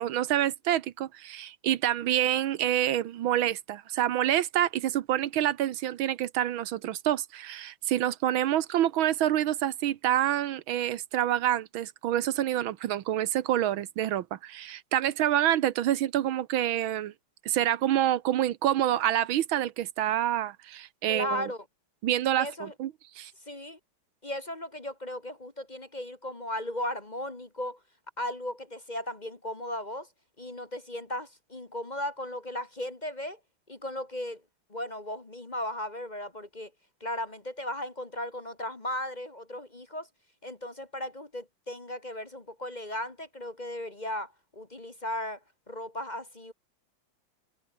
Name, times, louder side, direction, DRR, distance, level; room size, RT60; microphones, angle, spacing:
voice 1, 0.0-17.1 17.4-21.5 22.0-23.3, right 12 dB, 80° right, 1.7 m, -27 dB
voice 2, 21.1-21.6 22.4-22.7 23.5-23.8 24.2-27.8 28.2-30.1 30.4-33.4 33.7-34.4 34.7-36.7 37.0-40.1 40.4-45.4 45.7-46.5, left 1 dB, 25° left, 1.6 m, -36 dB
omnidirectional pair, 2.2 m